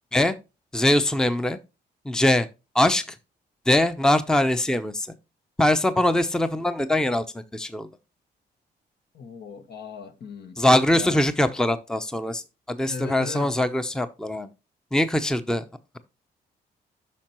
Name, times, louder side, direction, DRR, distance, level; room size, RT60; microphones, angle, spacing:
voice 1, 0.7-1.6 2.1-2.5 2.7-3.0 3.7-5.1 5.6-7.2 7.5-7.9 10.6-12.4 12.7-14.5 14.9-15.6, left 1 dB, 5° left, 0.7 m, -22 dB
voice 2, 9.1-10.6 10.9-11.2 12.9-13.5, left 5 dB, 60° left, 1.1 m, -37 dB
8.4 x 5.8 x 3.0 m
supercardioid pair, 65°, 19 cm